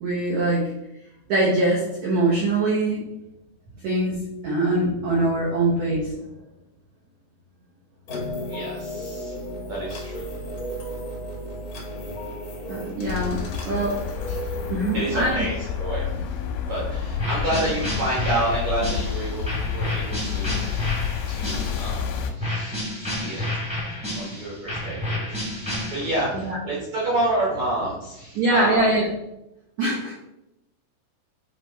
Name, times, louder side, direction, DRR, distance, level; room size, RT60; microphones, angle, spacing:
voice 1, 0.0-0.7 1.3-3.0 3.8-6.2 12.7-15.4 26.3-26.6 28.3-29.0 29.8-30.1, right 2 dB, 80° right, -5 dB, 1.6 m, -23 dB
sound 1, 8.1-15.3, equal, 70° left, 1.2 m, -34 dB
voice 2, 8.5-9.4 9.7-10.3 14.3-14.6 14.9-16.4 16.7-22.0 22.3-29.0, right 1 dB, 60° right, -5 dB, 1.9 m, -29 dB
sound 2, 13.1-22.3, left 8 dB, 85° left, 3.0 m, -29 dB
sound 3, 17.2-22.0 22.4-26.4, left 1 dB, 5° right, 0.6 m, -30 dB
8.8 x 3.0 x 4.4 m, 0.86 s
omnidirectional pair, 5.2 m